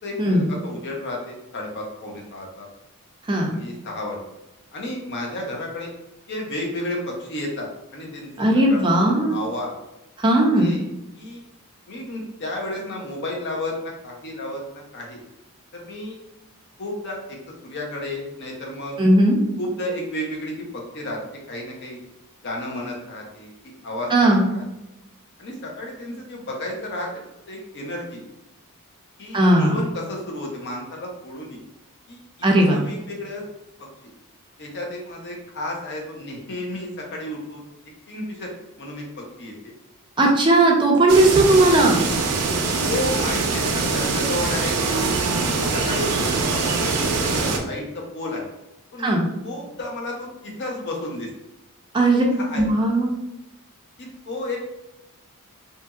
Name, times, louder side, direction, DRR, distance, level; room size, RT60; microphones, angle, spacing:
voice 1, 0.0-2.7 3.5-4.2 4.7-5.9 6.3-8.3 8.7-9.7 10.5-10.8 11.1-11.5 11.9-15.2 15.7-16.2 16.8-17.4 17.6-19.0 19.6-21.2 21.5-22.0 22.4-24.6 25.4-27.1 27.5-28.2 29.2-31.6 32.1-32.2 32.7-33.4 34.6-37.6 38.1-38.5 38.8-39.7 42.8-45.1 45.6-48.4 48.9-49.1 49.4-51.3 52.1-52.6 54.0-54.6, left 1 dB, 50° left, 0 dB, 0.7 m, -32 dB
voice 2, 3.3-3.6 8.4-9.4 10.2-10.7 19.0-19.4 24.1-24.4 29.3-29.8 32.4-32.8 40.2-42.0 49.0-49.3 51.9-52.3 52.6-53.1, right 1 dB, 20° right, -1 dB, 0.4 m, -17 dB
sound 1, 41.1-47.6, right 4 dB, 80° right, 0.5 m, -23 dB
2.8 x 2.6 x 2.3 m, 0.95 s
head